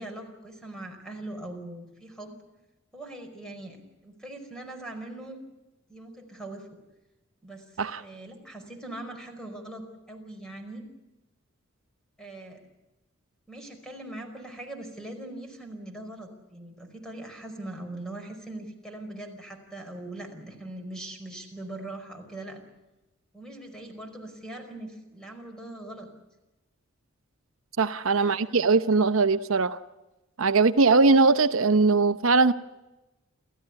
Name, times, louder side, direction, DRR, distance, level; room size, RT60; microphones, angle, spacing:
voice 1, 0.0-2.4 2.9-5.4 5.9-6.7 7.4-7.6 8.0-10.8 12.2-12.6 13.5-22.6 23.3-26.1 28.1-28.5, right 1 dB, 5° left, 3 dB, 5.0 m, -41 dB
voice 2, 27.8-29.8 30.4-32.5, right 3 dB, 70° right, 11 dB, 0.8 m, -21 dB
28.5 x 14.5 x 9.7 m, 1.0 s
head